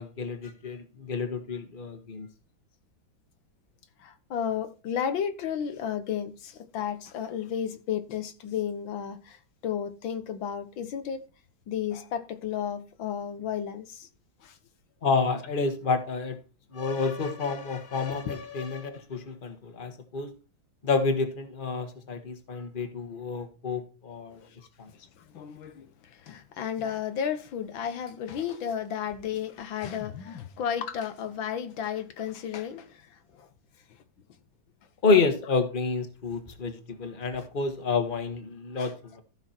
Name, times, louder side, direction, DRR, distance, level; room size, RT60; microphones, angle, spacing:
voice 1, 0.0-2.3 15.0-16.4 16.7-20.3 20.8-24.4 24.8-24.9 35.0-39.2, left 4 dB, 30° left, 1.6 m, -29 dB
voice 2, 4.0-11.2 11.7-14.1 14.4-14.6 24.4-24.6 24.9-33.5 33.9-34.0 38.8-38.9, left 8 dB, 85° left, 1.9 m, -33 dB
14.5 x 6.1 x 4.4 m
omnidirectional pair, 2.1 m